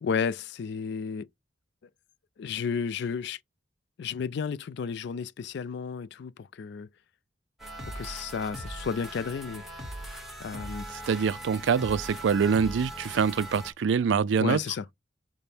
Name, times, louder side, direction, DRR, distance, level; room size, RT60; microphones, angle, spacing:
voice 1, 0.0-1.3 2.4-3.4 4.0-6.9 7.9-9.9 10.4-10.9 14.4-14.9, left 6 dB, 65° left, 0.3 m, -32 dB
sound 1, 7.6-13.7, right 1 dB, ahead, 1.2 m, -40 dB
voice 2, 11.1-14.6, right 6 dB, 75° right, 0.4 m, -25 dB
5.1 x 2.1 x 4.3 m
head